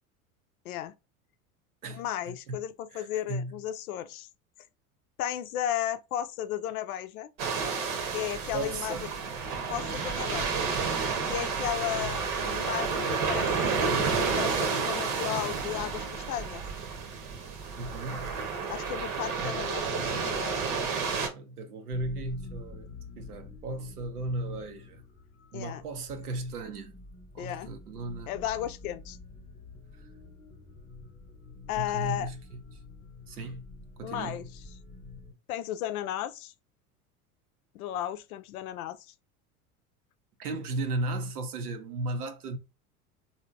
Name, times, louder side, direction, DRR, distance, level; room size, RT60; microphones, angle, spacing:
voice 1, 0.6-1.0 1.9-4.3 5.2-7.3 8.1-9.0 9.7-10.7 11.3-13.5 13.8-16.6 18.7-20.7 25.5-25.8 27.4-27.7 28.3-29.2 31.7-32.3 34.0-34.5 35.5-36.5 37.7-39.1, left 12 dB, 70° left, 0.6 m, -34 dB
voice 2, 1.8-2.6 2.9-3.5 8.5-9.1 11.8-12.1 17.8-18.3 19.4-19.6 21.3-22.9 23.2-25.0 25.5-27.0 27.3-28.3 31.7-32.6 33.3-33.7 34.0-34.5 40.4-42.6, right 2 dB, 85° right, 0.7 m, -36 dB
sound 1, 7.4-21.3, right 5 dB, 65° right, 1.0 m, -30 dB
sound 2, 21.9-35.3, left 3 dB, 20° left, 1.0 m, -48 dB
3.4 x 2.7 x 2.5 m
hypercardioid pair, 75°, 44 cm